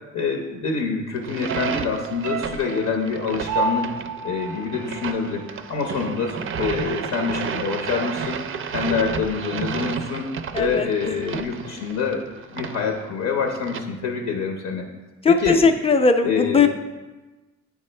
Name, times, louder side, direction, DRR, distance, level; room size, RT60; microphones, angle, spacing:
voice 1, 0.1-3.8 4.2-5.4 5.7-8.4 8.7-10.3 10.6-12.2 12.5-14.8 15.3-15.6 16.2-16.7, left 5 dB, 80° left, 2 dB, 0.8 m, -26 dB
sound 1, 1.2-13.8, right 7 dB, 45° right, 0.4 m, -32 dB
sound 2, 1.5-5.9 6.2-6.3, right 4 dB, 90° right, 0.6 m, -31 dB
voice 2, 10.5-11.1 15.2-16.7, left 4 dB, 20° left, 6 dB, 0.4 m, -19 dB
8.4 x 3.6 x 3.2 m, 1.2 s
cardioid pair, 90°, 30 cm